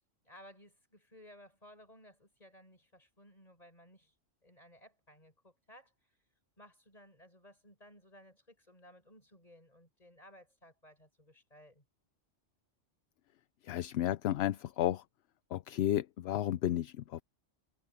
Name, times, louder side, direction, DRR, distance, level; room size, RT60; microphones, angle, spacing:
voice 1, 0.2-4.1 4.4-5.9 6.6-11.8, equal, 30° left, 6.4 m, -58 dB
voice 2, 13.6-15.0 15.5-17.2, left 12 dB, 65° left, 0.8 m, -32 dB
omnidirectional pair, 1.2 m